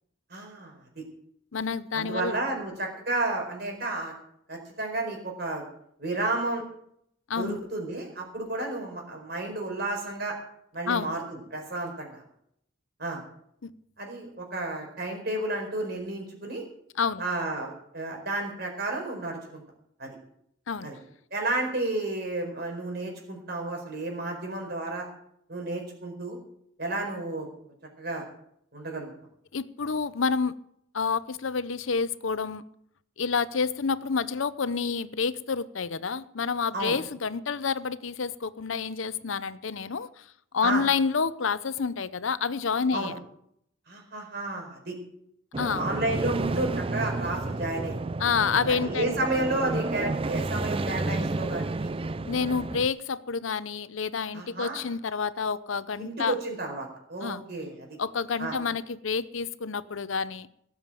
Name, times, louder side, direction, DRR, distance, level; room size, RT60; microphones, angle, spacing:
voice 1, 0.3-1.0 1.9-4.1 4.5-5.6 6.0-6.6 7.4-10.4 10.7-12.2 13.0-13.2 14.0-16.6 17.2-19.6 20.0-20.1 20.8-21.0 21.3-25.1 25.5-26.4 26.8-27.5 28.0-28.2 28.7-29.1 36.7-37.0 40.6-40.8 42.9-43.1 43.9-45.0 45.8-48.0 48.7-51.9 54.3-54.8 56.0-57.9 58.4-58.6, right 2 dB, 50° right, 4.6 m, -32 dB
voice 2, 1.5-2.4 7.3-7.6 10.9-11.1 13.6-13.7 17.0-17.2 20.7-20.9 29.5-30.5 30.9-32.6 33.2-40.3 40.5-43.2 45.6-45.9 48.2-49.1 52.2-56.3 57.2-57.4 58.0-60.5, left 5 dB, 80° left, 0.7 m, -28 dB
sound 1, 45.5-52.9, right 2 dB, 25° right, 0.4 m, -31 dB
18.5 x 7.3 x 7.5 m
head